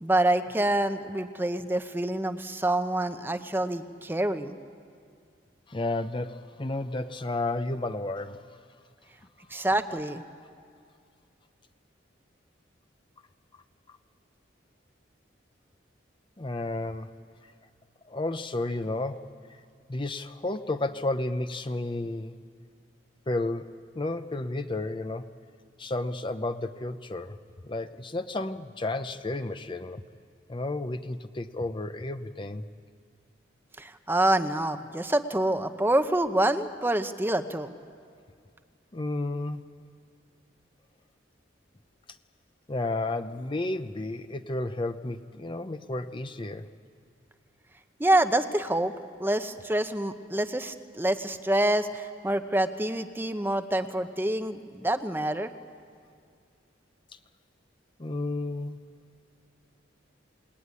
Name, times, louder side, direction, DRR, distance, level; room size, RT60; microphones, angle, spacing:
voice 1, 0.0-4.6 9.5-10.2 33.8-37.7 48.0-48.9 49.2-55.5, right 1 dB, 10° right, 8 dB, 0.8 m, -26 dB
voice 2, 5.7-8.4 16.4-17.1 18.1-19.3 19.9-22.3 23.3-25.3 25.8-27.4 27.6-30.0 30.5-32.6 38.9-39.7 42.7-46.7 58.0-58.8, left 2 dB, 25° left, 9 dB, 0.7 m, -32 dB
27.5 x 20.0 x 9.8 m, 2.3 s
head